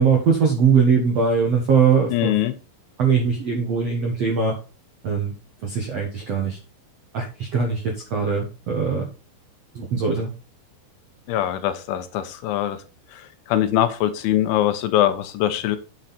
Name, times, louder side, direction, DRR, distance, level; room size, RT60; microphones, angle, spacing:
voice 1, 0.0-2.3 3.0-4.5 5.0-5.3 5.6-6.6 7.1-9.1 9.7-10.3, right 5 dB, 75° right, 0 dB, 1.4 m, -21 dB
voice 2, 2.1-2.5 11.3-12.8 13.5-15.8, left 12 dB, 85° left, 10 dB, 3.3 m, -22 dB
9.1 x 6.5 x 4.3 m, 0.33 s
omnidirectional pair, 5.4 m